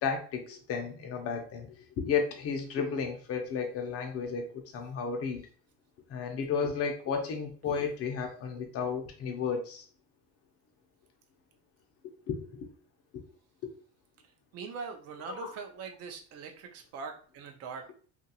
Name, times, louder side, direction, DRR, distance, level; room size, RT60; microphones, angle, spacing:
voice 1, 0.0-5.5 6.1-9.9 12.3-12.7 13.1-13.2 13.6-13.7 15.3-15.5, left 6 dB, 40° left, 3 dB, 0.7 m, -33 dB
voice 2, 14.2-17.9, right 5 dB, 45° right, 4 dB, 0.6 m, -42 dB
2.8 x 2.5 x 2.8 m, 0.42 s
cardioid pair, 140°, 36 cm